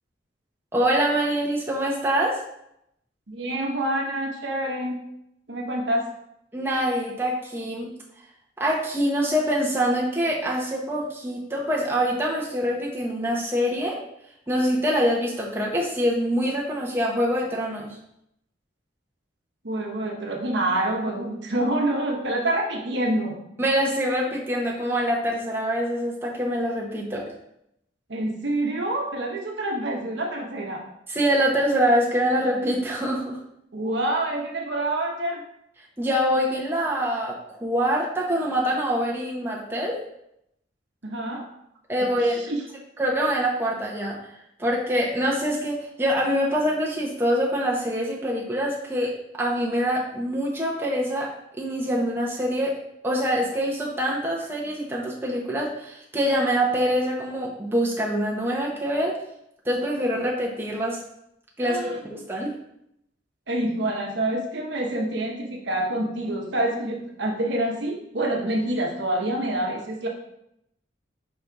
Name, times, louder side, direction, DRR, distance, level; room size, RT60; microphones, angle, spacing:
voice 1, 0.7-2.4 6.5-7.9 8.6-14.0 14.5-18.0 23.6-27.3 31.1-33.4 36.0-40.0 41.9-42.4 43.0-44.2 44.6-51.3 51.6-52.8 53.0-59.2 59.6-61.0 61.6-62.5, equal, 10° right, -4 dB, 1.0 m, -25 dB
voice 2, 3.3-5.0 5.5-6.1 19.6-23.4 28.1-30.8 33.7-35.4 41.0-41.5 42.0-42.6 61.6-62.0 63.5-70.1, right 1 dB, 65° right, 0 dB, 1.0 m, -27 dB
5.4 x 4.2 x 4.7 m, 0.77 s
head